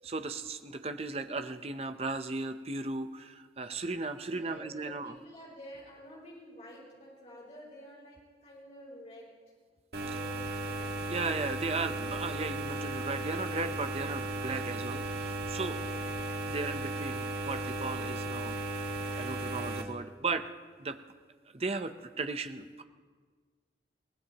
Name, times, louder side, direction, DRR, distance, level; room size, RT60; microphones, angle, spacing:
voice 1, 0.0-5.1 11.1-15.8 16.5-18.6 19.2-20.4 20.8-21.0 21.5-22.8, right 3 dB, 35° right, 8 dB, 0.7 m, -36 dB
voice 2, 4.2-9.4 10.0-11.0, equal, 40° left, -6 dB, 5.2 m, -50 dB
sound 1, 9.9-19.8, right 2 dB, 65° right, 1.8 m, -35 dB
22.5 x 18.0 x 3.0 m, 1.5 s
head